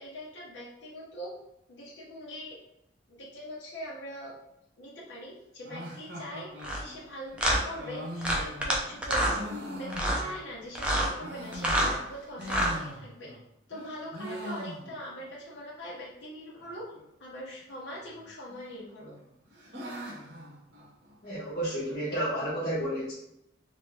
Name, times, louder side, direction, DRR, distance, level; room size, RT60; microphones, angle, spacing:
voice 1, 0.0-1.3 1.7-2.6 3.1-4.3 4.8-9.3 9.7-13.3 13.7-16.9 17.2-19.2, equal, 85° left, -6 dB, 0.9 m, -42 dB
sound 1, 5.6-10.6 11.0-13.4 13.7-15.3 15.5-15.6 15.8-15.9 16.6-17.0 18.0-18.6 19.0-21.4, equal, 70° right, 0.9 m, -42 dB
sound 2, 6.6-6.8 7.4-7.6 8.2-8.8 9.0-9.4 9.9-10.2 10.7-11.1 11.5-11.9 12.4-12.8, right 1 dB, 5° right, 0.5 m, -26 dB
voice 2, 21.2-23.1, right 1 dB, 55° left, -10 dB, 0.9 m, -31 dB
3.2 x 2.6 x 3.1 m, 0.78 s
head